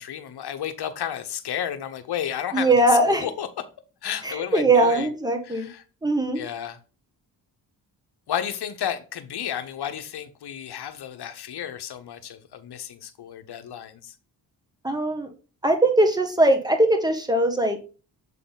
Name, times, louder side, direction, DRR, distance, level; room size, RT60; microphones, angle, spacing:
voice 1, 0.0-2.8 3.1-3.6 4.0-5.1 5.4-5.8 6.3-6.8 8.3-14.1, left 9 dB, 60° left, 1.0 m, -32 dB
voice 2, 2.5-3.3 4.2-5.7 6.0-6.4 14.8-15.3 15.6-17.8, right 2 dB, 10° right, 1.5 m, -20 dB
7.5 x 3.9 x 3.9 m
supercardioid pair, 60°, 43 cm